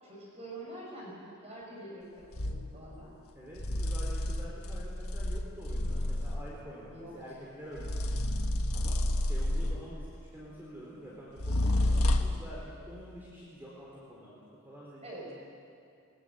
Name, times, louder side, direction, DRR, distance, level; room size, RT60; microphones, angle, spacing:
voice 1, 0.0-3.1 6.9-7.4 15.0-15.3, right 1 dB, 30° right, -4 dB, 5.2 m, -46 dB
sound 1, 2.3-2.7 3.6-6.6 7.8-10.0 11.4-12.5, left 1 dB, 85° left, 1.5 m, -30 dB
voice 2, 3.3-8.1 8.7-15.3, equal, 10° right, -6 dB, 4.0 m, -47 dB
21.0 x 20.5 x 8.1 m, 2.4 s
head